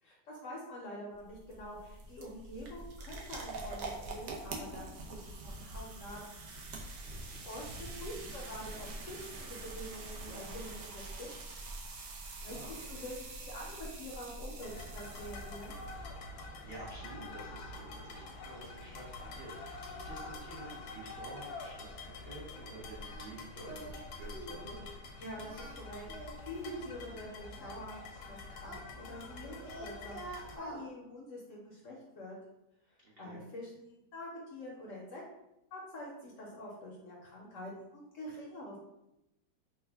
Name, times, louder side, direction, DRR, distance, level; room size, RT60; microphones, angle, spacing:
voice 1, 0.0-6.5 6.8-7.0 7.4-11.3 12.4-15.7 25.2-32.4 33.2-35.2 35.7-38.8, left 1 dB, 65° left, -3 dB, 0.8 m, -46 dB
sound 1, 1.1-16.0, right 2 dB, 70° right, 1.0 m, -45 dB
voice 2, 7.0-7.4 12.4-13.0 16.4-24.8 33.0-33.4, right 1 dB, 55° right, -7 dB, 0.7 m, -50 dB
sound 2, 14.6-30.6, left 2 dB, 80° left, 1.2 m, -46 dB
Singing, 23.0-23.3 23.6-24.0 24.3-24.6 25.3-26.9 27.6-29.3 29.6-30.8, right 2 dB, 25° right, 0.3 m, -48 dB
3.3 x 2.1 x 3.3 m, 0.90 s
omnidirectional pair, 1.8 m